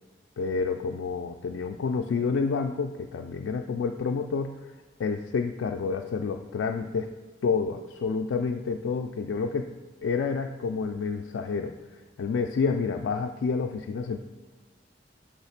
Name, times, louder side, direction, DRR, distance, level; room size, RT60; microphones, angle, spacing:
voice 1, 0.4-4.6 5.0-7.1 7.4-9.7 10.0-11.8 12.2-14.2, left 5 dB, 85° left, 3 dB, 0.3 m, -29 dB
6.2 x 3.2 x 5.7 m, 1.4 s
head